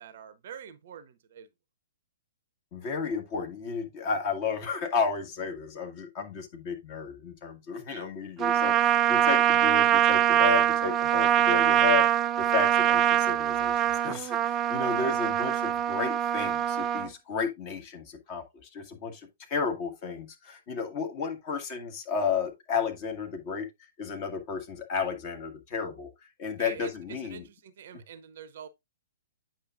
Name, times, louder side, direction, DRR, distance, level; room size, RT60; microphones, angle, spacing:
voice 1, 0.0-1.5 7.9-8.1 26.6-28.7, right 7 dB, 50° right, 0.7 m, -45 dB
voice 2, 2.7-23.7 24.0-26.1 26.4-27.5 27.9-28.0, left 5 dB, 35° left, 1.8 m, -33 dB
Trumpet, 8.4-17.1, right 11 dB, 20° right, 0.4 m, -23 dB
8.6 x 5.8 x 2.5 m
figure-of-eight pair, 115°, 0 cm